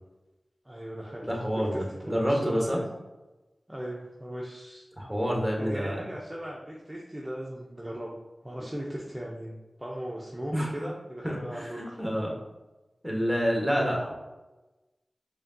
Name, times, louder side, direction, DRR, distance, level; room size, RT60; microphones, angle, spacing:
voice 1, 0.6-2.8 3.7-4.9 5.6-8.2 8.4-12.0, right 1 dB, 15° right, -4 dB, 0.7 m, -38 dB
voice 2, 1.2-2.8 5.0-6.0 10.5-10.7 11.2-12.3 13.0-14.1, equal, ahead, -1 dB, 1.2 m, -28 dB
4.8 x 2.9 x 2.7 m, 1.1 s
cardioid pair, 45°, 0 cm